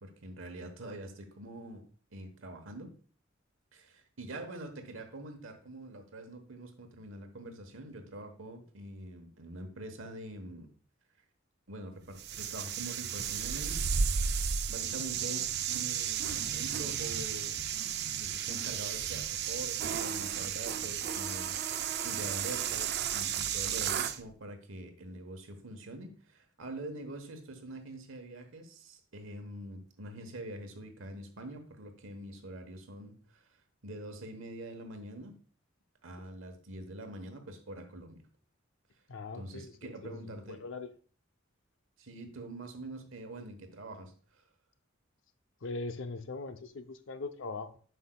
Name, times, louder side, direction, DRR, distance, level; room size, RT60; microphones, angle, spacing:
voice 1, 0.0-3.0 3.7-10.7 11.7-13.8 14.2-14.3 14.7-17.6 18.2-33.5 33.8-35.3 36.0-38.2 39.3-40.6 42.0-44.1, right 1 dB, 85° right, 1.1 m, -45 dB
sound 1, 12.2-24.2, right 7 dB, 55° right, 0.5 m, -33 dB
voice 2, 39.1-40.9 45.6-47.8, left 3 dB, 70° left, 0.6 m, -41 dB
7.9 x 5.6 x 2.3 m
head